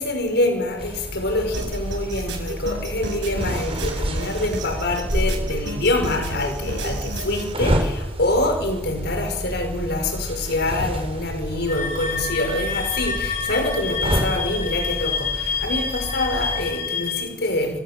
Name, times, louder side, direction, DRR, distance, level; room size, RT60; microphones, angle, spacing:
voice 1, 0.0-17.8, left 2 dB, 65° left, 6.0 m, -25 dB
sound 1, 0.8-16.7, equal, 30° right, 4.7 m, -30 dB
sound 2, 1.5-7.5, right 1 dB, 75° right, 7.6 m, -33 dB
sound 3, 11.7-17.2, left 5 dB, 40° left, 7.0 m, -28 dB
28.5 x 25.5 x 7.8 m
head